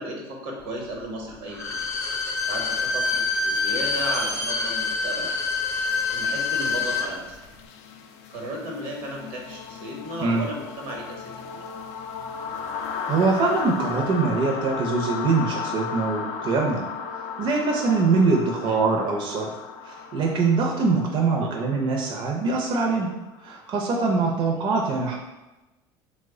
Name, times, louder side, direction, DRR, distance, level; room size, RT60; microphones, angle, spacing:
voice 1, 0.0-2.0 2.5-5.4 6.1-7.4 8.3-11.6 18.6-18.8 21.4-21.7 24.5-24.7, right 1 dB, 80° right, 0 dB, 0.9 m, -35 dB
Bowed string instrument, 1.5-7.1 7.4-7.5, left 4 dB, 25° left, 0.6 m, -26 dB
sound 1, 5.9-23.7, left 6 dB, 70° left, 0.4 m, -36 dB
voice 2, 12.9-16.8 17.4-19.5 19.8-23.1 23.4-25.2, right 4 dB, 45° right, 0 dB, 0.5 m, -23 dB
3.1 x 2.1 x 3.5 m, 1.1 s
supercardioid pair, 90°, 12 cm